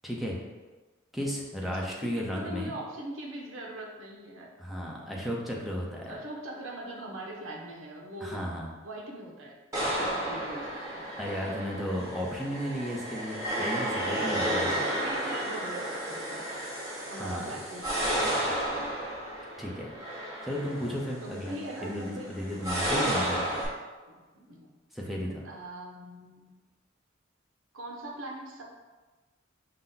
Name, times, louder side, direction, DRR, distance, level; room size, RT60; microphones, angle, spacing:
voice 1, 0.0-0.4 1.1-2.7 4.6-6.1 8.2-8.7 11.2-14.7 17.2-17.5 19.6-19.9 20.4-23.7 24.9-25.5, equal, ahead, -3 dB, 0.6 m, -34 dB
voice 2, 1.7-4.5 6.0-8.5 8.8-11.2 14.2-16.5 17.1-19.0 21.2-22.4 24.1-24.7 25.0-25.1 25.4-26.5 27.7-28.6, right 1 dB, 75° right, 0 dB, 0.8 m, -42 dB
sound 1, 9.7-23.7, right 1 dB, 15° right, 1.2 m, -32 dB
5.6 x 2.1 x 3.9 m, 1.3 s
head